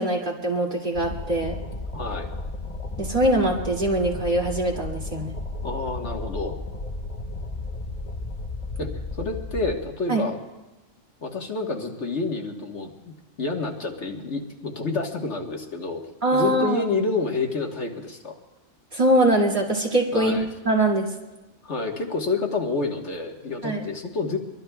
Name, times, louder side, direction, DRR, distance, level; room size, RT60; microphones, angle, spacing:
voice 1, 0.0-1.6 3.0-5.3 10.1-10.2 16.2-16.8 18.9-20.4 20.6-21.1 23.6-23.8, right 1 dB, 40° right, -2 dB, 2.6 m, -22 dB
sound 1, 0.9-9.8, left 2 dB, 35° left, 1.0 m, -34 dB
voice 2, 1.9-2.3 5.6-6.6 8.8-8.9 9.2-10.4 11.2-13.1 13.4-16.0 16.3-18.4 20.1-20.5 21.6-24.4, left 3 dB, 65° left, 1 dB, 1.7 m, -28 dB
26.0 x 23.0 x 2.3 m, 1.1 s
omnidirectional pair, 1.3 m